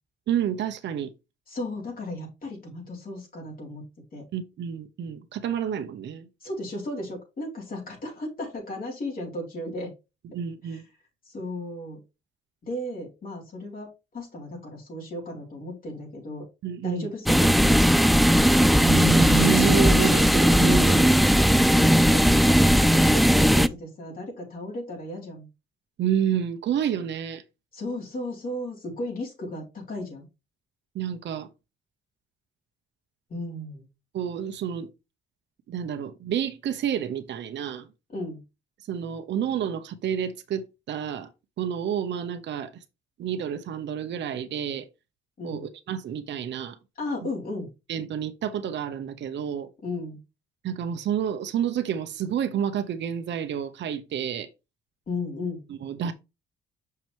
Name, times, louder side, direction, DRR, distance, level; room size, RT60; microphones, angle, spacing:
voice 1, 0.3-1.1 4.3-6.3 10.3-10.8 16.6-17.1 18.8-21.1 26.0-27.4 30.9-31.5 34.1-34.9 35.7-37.9 38.9-41.3 41.6-42.7 43.2-44.9 45.4-46.8 47.9-49.7 50.6-54.5 55.7-56.1, right 8 dB, 65° right, 0.9 m, -29 dB
voice 2, 1.5-3.8 4.1-4.3 6.4-9.9 10.6-10.8 11.2-12.0 12.6-16.5 16.8-17.9 21.7-25.5 27.7-30.3 33.3-33.9 38.1-38.4 45.4-45.7 47.0-47.7 49.8-50.2 55.1-55.6, left 1 dB, 45° left, 4.0 m, -35 dB
sound 1, 17.3-23.7, equal, ahead, 0.4 m, -18 dB
6.1 x 5.8 x 3.4 m
cardioid pair, 90°, 20 cm